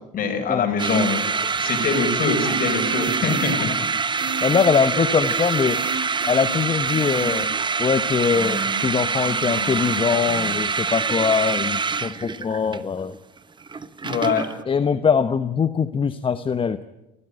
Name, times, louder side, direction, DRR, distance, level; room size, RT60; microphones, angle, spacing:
voice 1, 0.1-1.2 1.5-3.9 14.0-14.5, left 4 dB, 40° left, 4 dB, 6.0 m, -23 dB
sound 1, 0.8-14.6, right 5 dB, 20° right, 1.3 m, -25 dB
sound 2, 2.4-3.5 4.2-10.0 10.3-10.6, right 4 dB, 55° right, 4.6 m, -34 dB
voice 2, 3.2-3.7 4.4-5.8 6.3-7.5 7.8-13.1 14.7-16.9, left 6 dB, 25° left, 11 dB, 1.0 m, -22 dB
27.5 x 15.5 x 9.1 m, 0.99 s
hypercardioid pair, 80°, 21 cm